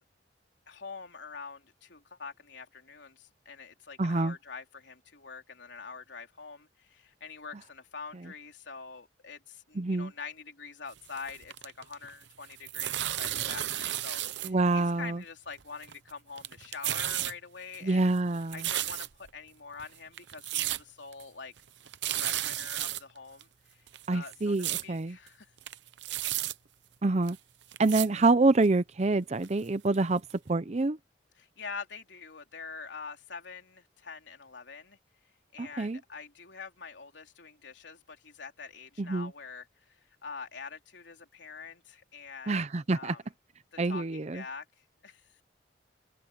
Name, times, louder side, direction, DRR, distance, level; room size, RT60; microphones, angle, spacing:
voice 1, 0.8-1.6 1.9-3.1 3.5-4.6 5.2-6.6 7.2-7.5 7.9-9.4 10.0-12.5 12.7-12.9 13.2-14.2 14.7-18.0 18.5-19.0 19.3-20.7 21.0-21.5 22.1-22.9 23.1-23.4 24.1-24.5 24.8-25.0 31.6-33.6 34.1-34.8 35.5-38.0 38.4-39.6 40.2-41.7 42.1-42.5 42.9-43.2 43.9-44.0 44.3-44.6, left 5 dB, 80° left, 3.4 m, -44 dB
voice 2, 4.0-4.3 9.8-10.1 14.4-15.2 17.8-18.6 24.1-25.2 27.0-27.4 27.8-30.2 30.5-31.0 35.6-36.0 39.0-39.3 42.5-43.1 43.8-44.4, right 3 dB, 35° right, 0.6 m, -26 dB
sound 1, 11.0-12.1 12.4-14.5 14.8-14.9 15.6-16.1 16.4-17.3 17.7-19.3 19.8-19.9 20.2-20.8 21.1-21.2 21.6-21.7 21.9-23.0 23.4-23.5 23.9-24.8 25.3-25.4 25.6-26.5 27.3-27.4 27.7-28.1 28.6-28.7 29.4-29.5 29.9-30.0 30.3-30.4, right 13 dB, 75° right, 0.8 m, -33 dB
open air
head